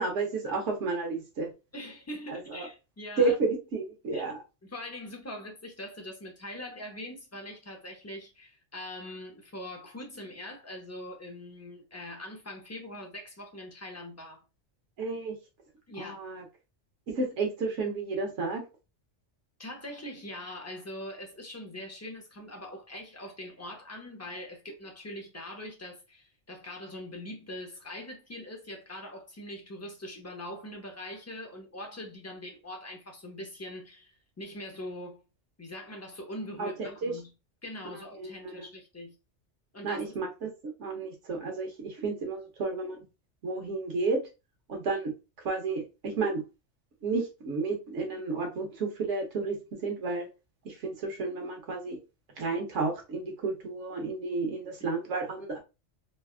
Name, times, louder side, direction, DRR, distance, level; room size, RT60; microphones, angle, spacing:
voice 1, 0.0-1.5 2.3-2.7 3.2-4.4 15.0-15.4 16.0-16.4 17.1-18.6 36.6-37.1 38.2-38.7 39.8-43.0 43.4-44.2 44.7-45.1 45.4-46.4 47.0-49.6 49.8-50.3 50.6-52.0 52.4-55.6, right 3 dB, 80° right, 1.1 m, -31 dB
voice 2, 1.7-3.3 4.1-4.3 4.6-14.4 15.9-16.2 19.6-35.2 35.6-37.3 37.6-39.1 39.7-40.2, left 1 dB, 20° left, 0.5 m, -42 dB
3.3 x 2.3 x 2.4 m
omnidirectional pair, 1.2 m